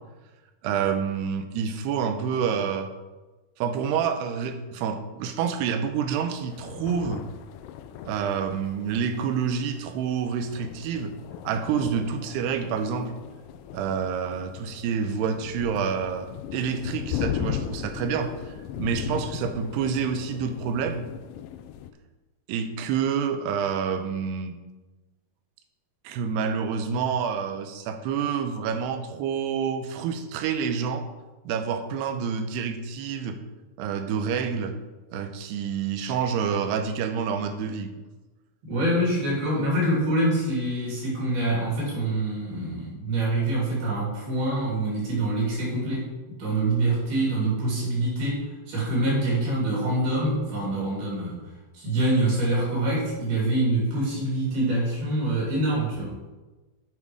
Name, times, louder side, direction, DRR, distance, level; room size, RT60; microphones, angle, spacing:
voice 1, 0.6-2.9 3.6-7.2 8.0-11.1 11.4-13.1 13.7-21.1 22.5-24.6 26.0-31.0 31.5-33.4 33.8-34.8 35.1-38.0, right 7 dB, 85° right, 7 dB, 2.9 m, -28 dB
sound 1, 6.4-21.9, left 10 dB, 80° left, 2.1 m, -37 dB
voice 2, 38.6-51.4 51.7-56.1, right 1 dB, 70° right, -5 dB, 4.9 m, -25 dB
8.2 x 7.3 x 4.8 m, 1.2 s
omnidirectional pair, 4.6 m